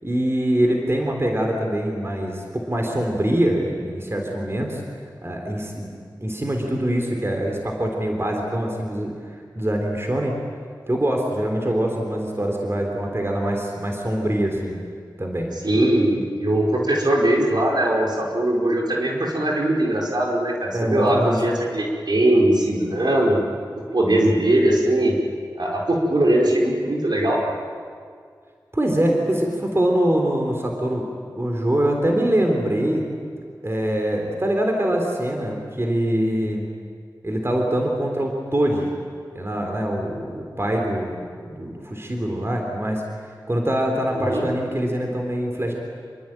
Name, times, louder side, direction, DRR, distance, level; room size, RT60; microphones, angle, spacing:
voice 1, 0.0-4.8 5.2-5.9 6.2-9.2 9.6-10.4 10.9-14.8 15.2-15.5 20.7-21.4 28.7-31.1 31.4-33.1 33.4-36.7 37.2-38.9 39.3-43.0 43.5-45.7, right 1 dB, 35° right, 1 dB, 3.7 m, -24 dB
voice 2, 15.6-23.4 23.9-25.1 25.6-27.4 44.1-44.4, right 1 dB, 65° right, -2 dB, 5.2 m, -20 dB
27.0 x 22.5 x 9.1 m, 2.1 s
wide cardioid pair, 70°, 8 cm